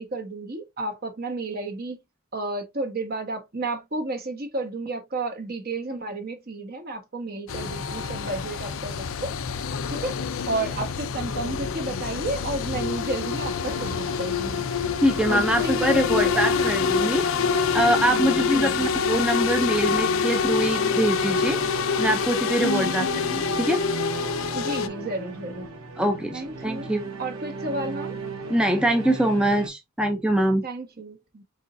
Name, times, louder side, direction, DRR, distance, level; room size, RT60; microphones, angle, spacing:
voice 1, 0.0-2.0 2.3-9.4 9.9-10.1 10.5-14.7 15.3-17.1 18.4-18.9 22.6-23.0 24.5-25.7 26.3-26.9 27.2-28.2 30.6-31.4, right 2 dB, 45° right, 1.2 m, -32 dB
sound 1, 7.5-24.9, left 6 dB, 70° left, 0.5 m, -26 dB
sound 2, 13.6-29.7, right 2 dB, 75° right, 1.2 m, -36 dB
voice 2, 15.0-17.2 17.7-21.6 22.0-23.1 23.3-23.8 26.0-27.1 28.5-30.6, right 1 dB, 5° right, 0.5 m, -23 dB
4.8 x 4.0 x 2.6 m
head